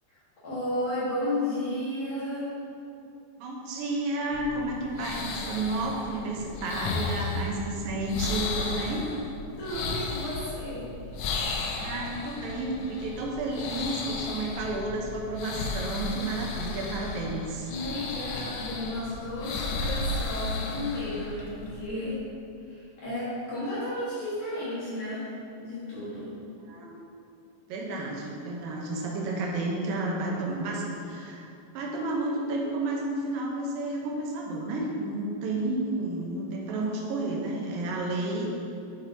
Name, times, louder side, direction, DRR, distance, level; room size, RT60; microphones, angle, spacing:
voice 1, 0.4-2.5 9.6-10.9 17.7-22.2 22.7-25.3 25.6-26.3, left 1 dB, 60° left, -11 dB, 3.1 m, -33 dB
voice 2, 3.4-9.1 11.7-17.7 26.7-27.0 27.7-31.5 31.7-38.5, right 2 dB, 75° right, -2 dB, 2.8 m, -31 dB
sound 1, 4.3-21.9, left 3 dB, 85° left, 1.6 m, -34 dB
9.4 x 8.2 x 2.9 m, 2.6 s
omnidirectional pair, 4.2 m